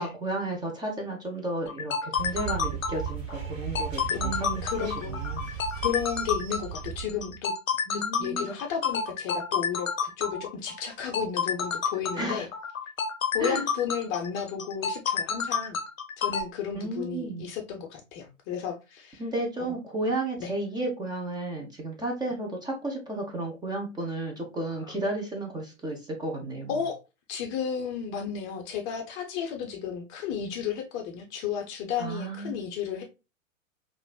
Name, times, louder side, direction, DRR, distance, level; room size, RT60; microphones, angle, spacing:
voice 1, 0.0-5.5 7.9-8.5 12.2-12.5 13.4-13.6 16.7-17.5 19.2-26.7 32.0-32.6, right 1 dB, 10° right, 0.7 m, -33 dB
sound 1, 1.7-16.4, left 6 dB, 80° left, 0.6 m, -30 dB
sound 2, 2.1-7.4, right 9 dB, 55° right, 1.5 m, -36 dB
voice 2, 4.1-5.2 5.5-7.5 7.9-12.5 13.3-15.8 16.2-19.2 19.6-19.7 20.4-20.5 24.9-25.0 26.7-27.0 27.3-33.0, left 7 dB, 30° left, 0.6 m, -33 dB
5.0 x 2.6 x 2.2 m
figure-of-eight pair, 105°, 39 cm